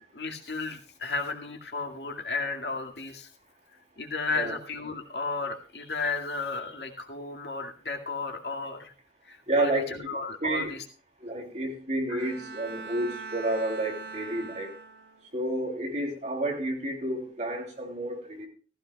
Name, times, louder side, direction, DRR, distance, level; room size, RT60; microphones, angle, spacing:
voice 1, 0.1-3.3 4.0-8.9 9.3-10.8 12.1-12.3, left 4 dB, 65° left, 2.2 m, -34 dB
voice 2, 9.5-10.8 11.2-14.7 15.3-18.5, right 1 dB, 40° right, 3.1 m, -30 dB
Bowed string instrument, 12.2-15.4, right 4 dB, 65° right, 1.8 m, -42 dB
16.0 x 15.0 x 2.3 m
head